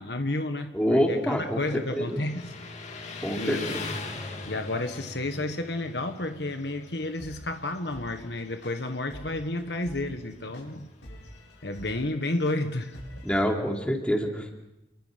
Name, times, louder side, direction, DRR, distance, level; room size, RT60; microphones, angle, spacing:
voice 1, 0.0-2.5 3.0-3.7 4.4-10.9 11.6-13.0, left 2 dB, 65° left, 7 dB, 1.5 m, -31 dB
voice 2, 0.7-1.6 1.9-2.2 3.2-3.8 13.2-14.5, equal, 5° left, 1 dB, 3.2 m, -26 dB
Motorcycle, 1.0-13.7, left 3 dB, 40° left, 2.6 m, -43 dB
sound 1, 7.2-13.3, equal, 85° left, 8.0 m, -45 dB
29.0 x 23.5 x 5.2 m, 0.90 s
head